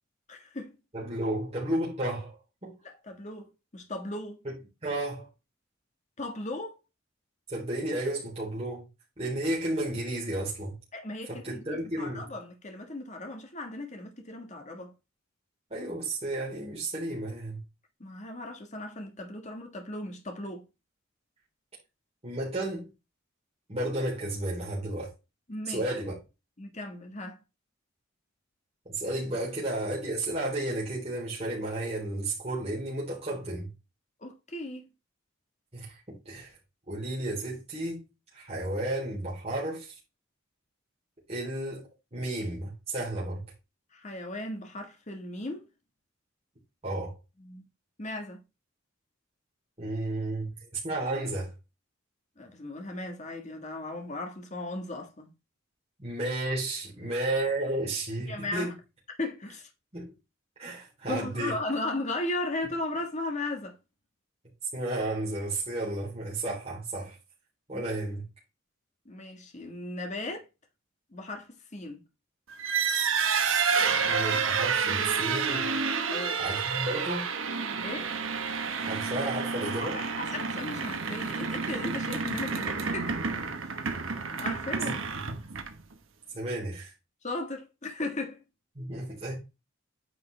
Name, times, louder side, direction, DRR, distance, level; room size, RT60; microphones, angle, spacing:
voice 1, 0.3-0.7 2.8-4.4 6.2-6.8 10.9-14.9 18.0-20.6 25.5-25.8 26.6-27.4 34.2-34.8 43.9-45.7 47.4-47.6 48.0-48.4 52.4-55.3 58.3-58.7 59.2-59.7 61.1-63.8 67.7-67.8 69.0-70.5 71.1-72.0 76.1-76.4 77.8-78.1 79.5-83.2 84.4-85.0 87.2-88.4, left 2 dB, 35° left, 1.6 m, -36 dB
voice 2, 0.9-2.4 2.6-2.7 4.4-4.5 4.8-5.3 7.5-8.9 9.2-10.7 11.3-12.3 15.7-17.6 22.2-22.9 23.7-25.1 25.7-26.1 28.9-33.7 35.7-36.5 36.9-38.0 38.3-39.9 41.3-43.4 46.8-47.2 49.8-51.5 56.0-58.7 59.9-60.1 60.6-61.6 64.7-67.2 67.7-68.2 74.1-75.7 76.4-77.3 78.8-80.0 84.9-85.0 86.3-86.9 88.8-89.4, right 1 dB, 30° right, 3.6 m, -32 dB
sound 1, 72.5-85.9, right 5 dB, 80° right, 1.2 m, -29 dB
9.4 x 5.4 x 3.3 m
head